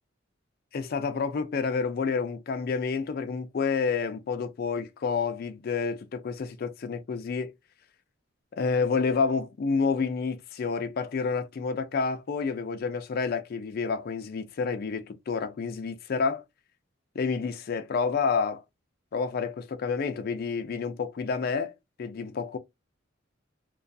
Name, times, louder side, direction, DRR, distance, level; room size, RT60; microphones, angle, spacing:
voice 1, 0.7-7.5 8.5-16.4 17.2-18.6 19.1-21.7 22.0-22.6, left 5 dB, 50° left, 0.3 m, -29 dB
2.3 x 2.3 x 2.5 m
head